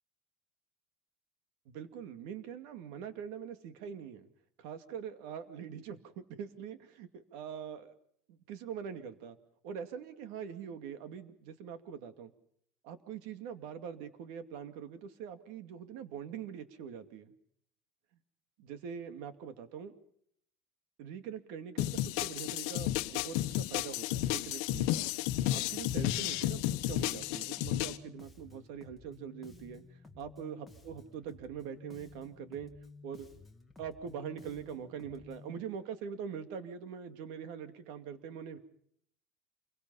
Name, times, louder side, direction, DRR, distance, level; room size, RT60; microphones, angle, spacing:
voice 1, 1.7-4.3 4.6-7.9 8.3-9.4 9.6-12.3 12.8-17.3 18.6-19.9 21.0-25.1 25.5-32.7 33.0-33.3 33.8-38.6, right 7 dB, 60° right, 9 dB, 2.3 m, -43 dB
sound 1, 21.8-28.0, left 15 dB, 60° left, 1.2 m, -32 dB
Bass guitar, 25.7-35.6, left 3 dB, 5° left, 1.8 m, -54 dB
28.0 x 23.0 x 5.6 m, 0.69 s
cardioid pair, 180°, 0 cm